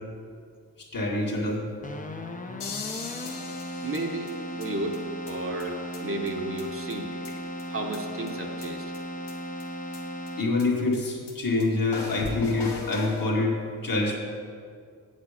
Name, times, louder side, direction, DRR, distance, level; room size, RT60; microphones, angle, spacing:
voice 1, 0.9-1.6 5.5-5.6 10.4-13.6 13.8-14.2, left 2 dB, 55° left, -2 dB, 2.0 m, -26 dB
Keyboard (musical), 1.8-10.8, equal, 20° left, 0.8 m, -36 dB
sound 1, 2.6-4.7 4.9-5.0 5.3-5.4 5.6-5.7 5.9-6.0 6.3-6.4 6.6-6.7 6.9-7.6 7.9-8.0 8.3-8.4 8.6-8.7 8.9-9.0 9.3-9.4 9.6-9.7 9.9-10.0 10.3-10.4 10.6-10.7 10.9-11.0 11.3-11.4 11.6-11.7 11.9-13.3, left 4 dB, 85° left, 1.3 m, -38 dB
voice 2, 3.8-7.1 7.7-8.9, right 2 dB, 35° right, 2 dB, 1.1 m, -33 dB
8.0 x 7.5 x 5.0 m, 2.2 s
cardioid pair, 65°, 40 cm